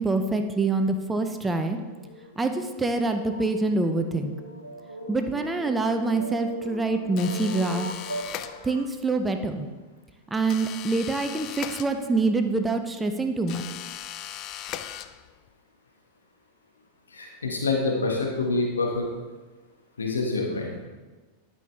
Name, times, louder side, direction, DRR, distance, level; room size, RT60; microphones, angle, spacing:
voice 1, 0.0-1.8 2.4-4.3 5.1-8.1 8.6-9.7 10.3-13.6, right 3 dB, 10° right, 7 dB, 0.7 m, -25 dB
sound 1, 1.7-8.9, equal, 85° right, 1.1 m, -39 dB
sound 2, 7.2-9.0 10.5-12.4 13.5-15.5, left 11 dB, 40° left, 0.4 m, -38 dB
voice 2, 17.1-19.1 20.0-20.8, left 3 dB, 70° left, 0 dB, 1.4 m, -26 dB
12.0 x 5.6 x 3.5 m, 1.3 s
figure-of-eight pair, 90°, 0 cm